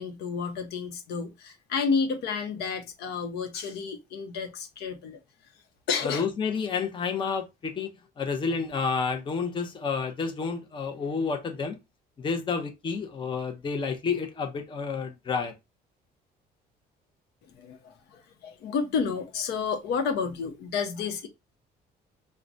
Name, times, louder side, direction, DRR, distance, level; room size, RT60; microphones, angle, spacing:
voice 1, 0.0-5.2 5.9-6.3 17.4-21.3, left 5 dB, 80° left, 0.8 m, -31 dB
voice 2, 6.0-7.9 8.2-11.8 12.2-15.5, left 5 dB, 30° left, 0.6 m, -30 dB
4.7 x 2.2 x 2.6 m
cardioid pair, 110°, 17 cm